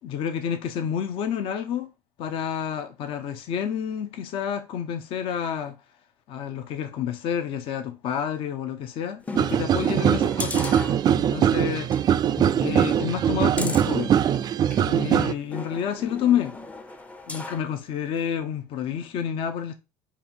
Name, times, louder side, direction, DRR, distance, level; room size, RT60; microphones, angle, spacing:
voice 1, 0.0-1.9 2.2-5.8 6.3-10.7 11.1-11.9 12.2-12.3 12.6-14.1 14.8-16.6 17.3-19.7, left 8 dB, 55° left, 0.6 m, -29 dB
sound 1, 9.2-11.5 11.9-12.0 12.4-14.9 15.5-17.7 18.2-18.3, left 2 dB, 10° left, 0.5 m, -37 dB
sound 2, 9.4-15.3, right 9 dB, 40° right, 0.3 m, -22 dB
4.2 x 2.9 x 4.2 m
supercardioid pair, 100°, 11 cm